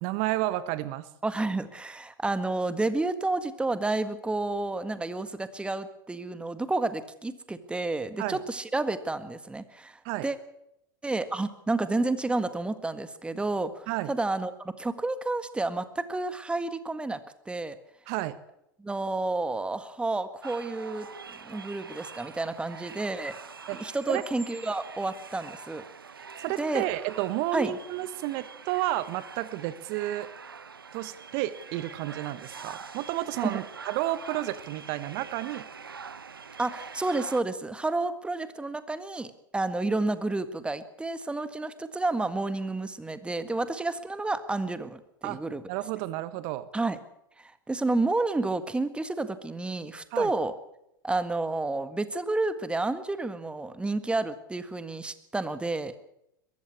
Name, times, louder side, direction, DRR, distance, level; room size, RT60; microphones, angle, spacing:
voice 1, 0.0-1.1 8.2-8.4 10.0-10.3 13.9-14.1 18.1-18.4 23.7-23.8 24.1-24.2 26.4-30.3 30.9-35.7 45.2-45.4 45.7-46.7 50.1-50.3, right 16 dB, 50° right, 15 dB, 1.2 m, -31 dB
voice 2, 1.2-10.4 11.0-14.5 14.8-17.2 17.4-17.8 18.8-21.1 21.4-23.3 23.7-25.8 26.6-26.8 27.5-27.7 33.4-33.6 36.6-45.6 46.7-47.0 47.4-50.5 51.0-55.9, right 2 dB, 10° right, 12 dB, 1.7 m, -30 dB
sound 1, 20.4-37.4, right 5 dB, 90° right, 0.8 m, -44 dB
22.0 x 14.5 x 8.6 m, 0.81 s
hypercardioid pair, 90°, 12 cm